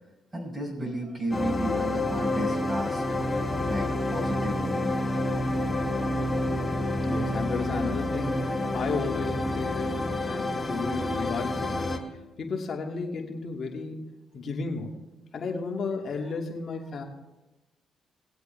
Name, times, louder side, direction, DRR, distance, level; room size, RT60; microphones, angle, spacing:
voice 1, 0.3-3.0 3.7-4.9, right 1 dB, 30° right, -2 dB, 5.1 m, -33 dB
sound 1, 1.3-12.0, left 1 dB, 20° left, 1.9 m, -28 dB
voice 2, 7.0-8.5 8.7-12.0 12.4-14.0 14.3-14.9 15.3-17.0, left 4 dB, 55° left, 0 dB, 2.6 m, -33 dB
20.5 x 8.0 x 3.5 m, 1.0 s
supercardioid pair, 70°, 0 cm